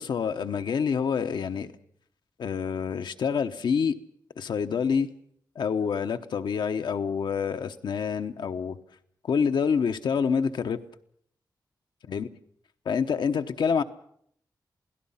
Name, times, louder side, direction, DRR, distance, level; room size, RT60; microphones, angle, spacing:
voice 1, 0.0-1.7 2.4-4.0 4.4-5.1 5.6-8.8 9.2-10.8 12.1-12.3 12.8-13.8, left 6 dB, 85° left, 8 dB, 1.0 m, -27 dB
28.0 x 17.0 x 5.7 m, 0.67 s
cardioid pair, 60°, 8 cm